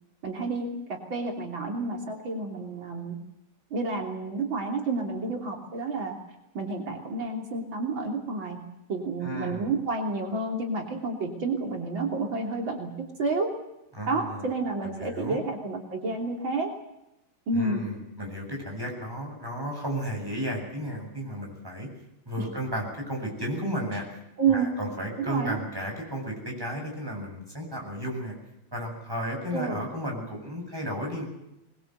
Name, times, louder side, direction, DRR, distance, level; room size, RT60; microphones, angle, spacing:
voice 1, 0.2-3.2 3.7-6.2 6.5-8.6 8.9-12.9 13.2-13.5 14.1-16.7 17.5-17.8 22.4-22.5 23.9-24.0 24.4-24.7 25.2-25.6 29.5-29.8, right 3 dB, 70° right, 2 dB, 3.8 m, -30 dB
voice 2, 9.2-9.7 13.9-14.5 14.8-15.4 17.5-21.9 22.3-24.0 24.5-28.3 28.7-31.2, equal, 10° right, 0 dB, 7.7 m, -33 dB
24.5 x 21.0 x 8.0 m, 0.87 s
omnidirectional pair, 2.2 m